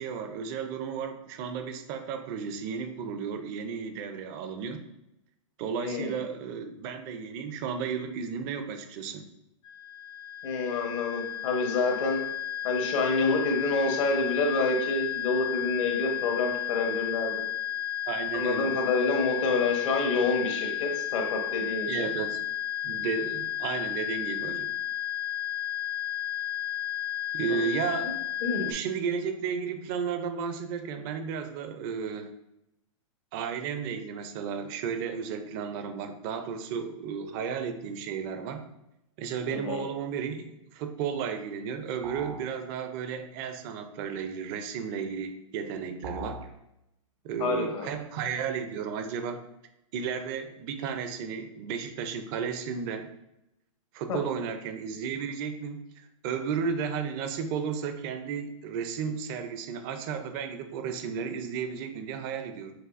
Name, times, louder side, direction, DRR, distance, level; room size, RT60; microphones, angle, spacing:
voice 1, 0.0-4.8 5.6-9.2 18.1-18.7 21.9-22.4 22.8-24.7 27.3-28.1 28.7-32.3 33.3-38.6 39.2-46.4 47.2-49.4 49.9-53.1 53.9-62.7, right 6 dB, 40° right, 8 dB, 0.5 m, -33 dB
voice 2, 5.8-6.1 10.4-12.2 12.6-17.4 18.3-22.1 27.5-27.7 28.4-28.7 39.5-39.8 47.4-47.9 54.1-54.2, left 3 dB, 65° left, 2 dB, 1.1 m, -28 dB
sound 1, 9.7-28.7, left 12 dB, 40° left, 0.6 m, -33 dB
sound 2, 42.0-42.5 46.0-46.5, right 2 dB, 70° right, 0.8 m, -39 dB
6.0 x 2.7 x 2.5 m, 0.86 s
hypercardioid pair, 130°, 17 cm